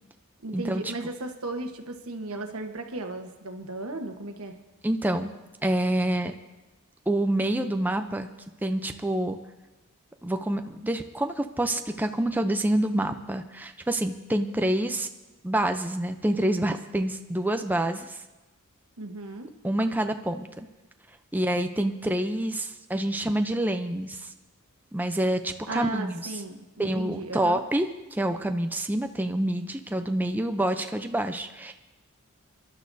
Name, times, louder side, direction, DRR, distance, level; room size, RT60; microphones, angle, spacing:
voice 1, 0.4-4.6 19.0-19.5 25.7-27.6, right 2 dB, 80° right, 5 dB, 1.2 m, -35 dB
voice 2, 4.8-5.3 5.6-6.3 7.1-8.3 8.6-9.4 10.2-15.1 15.4-18.2 19.6-20.7 21.3-24.3 24.9-26.3 26.8-31.7, right 1 dB, 10° right, 6 dB, 0.5 m, -27 dB
25.5 x 11.5 x 2.7 m, 1.1 s
head